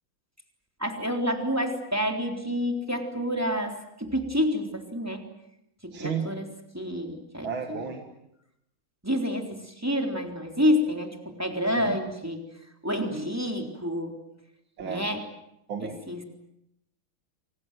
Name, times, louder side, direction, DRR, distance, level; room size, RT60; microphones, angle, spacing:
voice 1, 0.8-5.2 5.8-6.5 6.7-7.9 9.0-12.5 12.8-14.2 14.8-15.2 15.8-16.2, equal, 5° right, 3 dB, 3.7 m, -28 dB
voice 2, 5.9-6.3 7.4-8.0 11.8-12.0 14.8-15.0 15.7-16.0, right 6 dB, 70° right, 4 dB, 2.8 m, -32 dB
30.0 x 24.0 x 7.7 m, 0.82 s
omnidirectional pair, 2.3 m